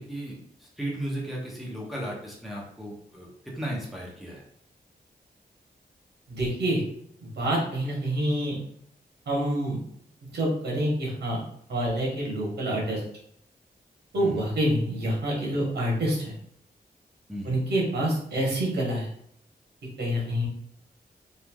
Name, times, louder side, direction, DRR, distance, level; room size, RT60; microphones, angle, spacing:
voice 1, 0.0-4.4 14.1-14.4 17.3-17.6, right 1 dB, ahead, -3 dB, 0.7 m, -35 dB
voice 2, 6.3-6.8 7.2-8.6 9.3-9.8 10.3-11.4 11.7-13.0 14.1-16.3 17.4-19.1 20.0-20.5, right 1 dB, 85° right, -3 dB, 1.0 m, -27 dB
3.1 x 2.4 x 2.2 m, 0.69 s
wide cardioid pair, 115°, 17 cm